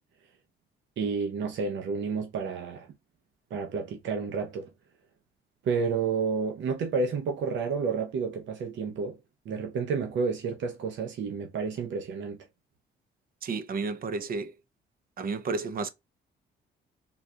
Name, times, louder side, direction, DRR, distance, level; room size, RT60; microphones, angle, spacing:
voice 1, 1.0-2.9 3.5-4.7 5.6-9.2 9.5-12.4, right 5 dB, 70° right, 0.8 m, -30 dB
voice 2, 13.4-14.5 15.2-15.9, right 4 dB, 50° right, 0.6 m, -31 dB
3.8 x 2.4 x 2.7 m
cardioid pair, 90°, 20 cm